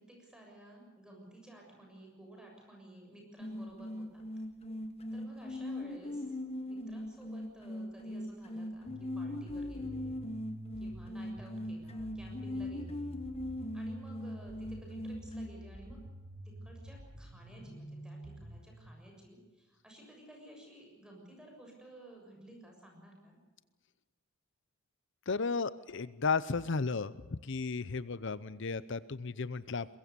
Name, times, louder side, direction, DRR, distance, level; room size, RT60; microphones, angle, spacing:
voice 1, 0.1-4.3 5.1-6.3 6.7-10.3 10.8-13.2 13.7-16.0 16.4-23.4, right 1 dB, 5° right, 0 dB, 6.8 m, -54 dB
sound 1, 3.4-15.5, left 1 dB, 30° left, 1.6 m, -40 dB
sound 2, 8.9-18.9, right 1 dB, 55° right, 3.8 m, -48 dB
voice 2, 25.3-27.1 27.4-29.9, left 4 dB, 60° left, 16 dB, 0.7 m, -34 dB
23.5 x 21.5 x 6.8 m, 1.2 s
head